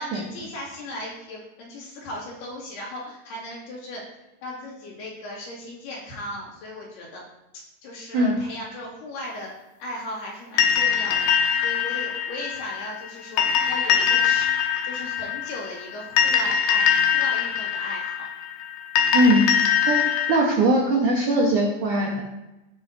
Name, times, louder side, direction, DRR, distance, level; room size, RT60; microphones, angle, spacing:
voice 1, 0.0-4.0 4.4-7.2 7.5-9.5 9.8-14.5 14.8-16.9 17.1-18.3, left 1 dB, 60° left, -5 dB, 4.1 m, -37 dB
sound 1, 10.6-20.4, left 8 dB, 80° left, 2.3 m, -23 dB
voice 2, 19.1-20.0 20.3-22.2, right 1 dB, 90° right, -1 dB, 1.7 m, -20 dB
17.0 x 6.1 x 2.7 m, 1.0 s
omnidirectional pair, 5.5 m